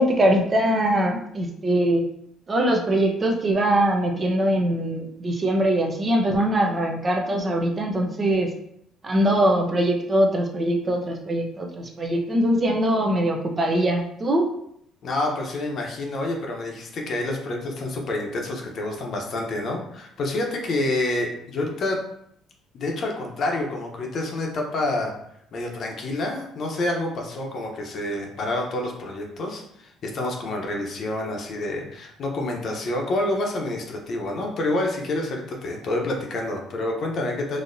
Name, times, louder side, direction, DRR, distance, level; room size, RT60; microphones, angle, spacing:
voice 1, 0.0-2.0 2.5-8.5 9.0-14.5, right 1 dB, 30° right, 2 dB, 0.6 m, -22 dB
voice 2, 15.0-22.0 22.7-25.1 25.5-37.6, left 2 dB, 50° left, 1 dB, 0.8 m, -28 dB
4.1 x 2.7 x 2.6 m, 0.72 s
cardioid pair, 110°, 0 cm